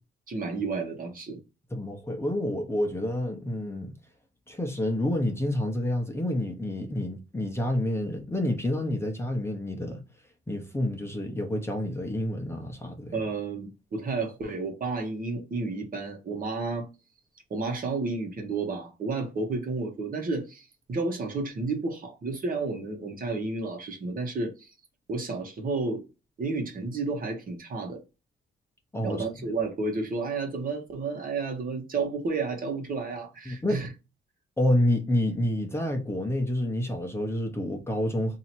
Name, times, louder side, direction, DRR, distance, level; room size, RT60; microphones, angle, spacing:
voice 1, 0.3-1.4 13.1-16.9 17.5-24.7 25.1-26.0 26.4-28.0 29.0-33.9, right 3 dB, 45° right, 1.2 m, -31 dB
voice 2, 1.7-3.9 4.5-10.0 10.5-13.1 28.9-29.2 33.5-33.8 34.6-38.4, left 1 dB, 10° left, 0.9 m, -28 dB
2.8 x 2.8 x 4.4 m
cardioid pair, 90°, 20 cm